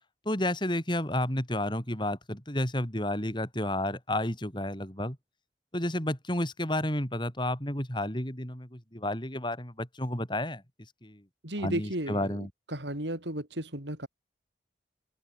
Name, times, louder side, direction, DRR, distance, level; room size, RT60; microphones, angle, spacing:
voice 1, 0.3-5.2 5.7-10.6 11.0-11.2 11.6-12.5, left 1 dB, 25° left, 5.2 m, -31 dB
voice 2, 11.4-14.1, right 1 dB, 85° right, 6.5 m, -34 dB
open air
head